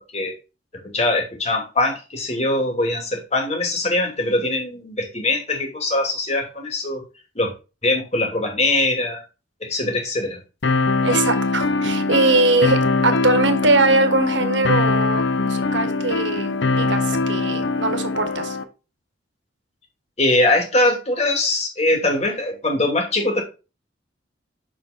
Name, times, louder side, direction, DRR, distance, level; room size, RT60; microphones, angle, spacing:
voice 1, 0.7-7.0 7.3-7.5 7.8-9.2 9.6-10.4 20.2-23.4, left 2 dB, 35° left, 2.7 m, -22 dB
sound 1, 10.6-18.6, left 3 dB, 80° left, 1.0 m, -22 dB
voice 2, 11.0-18.6, right 2 dB, 75° right, 1.5 m, -21 dB
6.8 x 6.2 x 4.3 m
head